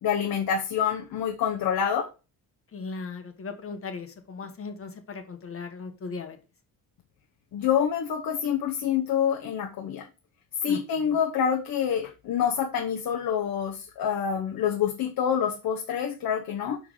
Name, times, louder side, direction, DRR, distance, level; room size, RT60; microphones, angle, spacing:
voice 1, 0.0-2.1 7.5-10.1 10.6-16.8, left 8 dB, 70° left, 3 dB, 1.1 m, -27 dB
voice 2, 2.7-6.4 10.7-10.8, left 4 dB, 35° left, 6 dB, 1.3 m, -37 dB
6.2 x 5.7 x 4.9 m, 0.31 s
wide cardioid pair, 170°, 36 cm